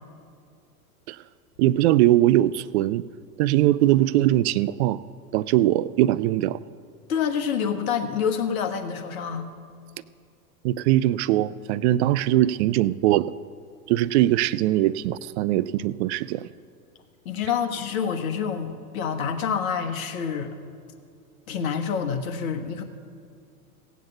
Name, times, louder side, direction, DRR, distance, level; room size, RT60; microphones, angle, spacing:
voice 1, 1.6-3.0 3.4-5.0 5.3-6.6 10.6-13.3 13.9-16.5, right 14 dB, 45° right, 19 dB, 0.5 m, -21 dB
voice 2, 7.1-9.5 17.2-20.5 21.5-22.8, left 7 dB, 65° left, 6 dB, 1.6 m, -27 dB
16.0 x 8.1 x 7.2 m, 2.3 s
hypercardioid pair, 100°, 46 cm